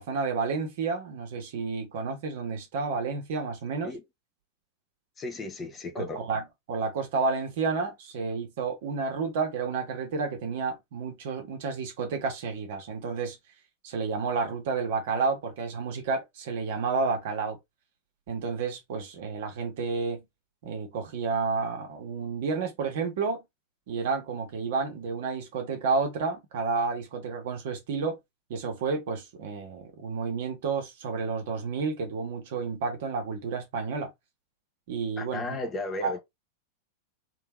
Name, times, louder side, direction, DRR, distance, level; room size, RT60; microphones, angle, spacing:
voice 1, 0.0-3.9 6.0-13.4 13.8-17.6 18.3-20.2 20.6-23.4 23.9-28.2 28.5-34.1 34.9-35.6 36.0-36.2, right 4 dB, 55° right, 1.6 m, -30 dB
voice 2, 5.2-6.3 35.2-36.2, left 2 dB, 20° left, 1.3 m, -34 dB
3.7 x 3.5 x 3.1 m
figure-of-eight pair, 90°, 0 cm